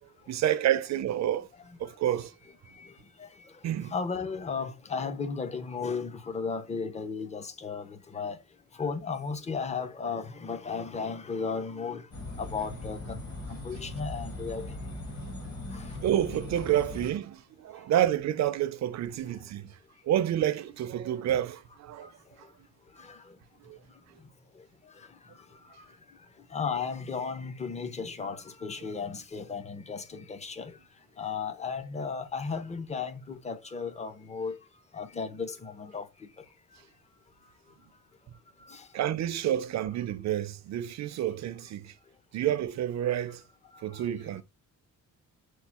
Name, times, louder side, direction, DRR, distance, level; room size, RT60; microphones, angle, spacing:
voice 1, 0.3-1.5 1.8-2.3 3.6-3.9 16.0-19.7 20.1-22.1 23.7-23.8 38.9-41.9 42.3-43.4 43.8-44.4, right 11 dB, 55° right, 0.5 m, -29 dB
voice 2, 3.9-8.4 8.8-12.0 12.4-13.2 13.5-14.7 15.7-15.8 26.5-30.7 31.2-34.5 34.9-36.1 38.7-38.8, left 5 dB, 20° left, 0.5 m, -34 dB
sound 1, 12.1-17.1, left 2 dB, 35° left, 1.1 m, -39 dB
4.5 x 2.3 x 4.2 m
wide cardioid pair, 165°, 33 cm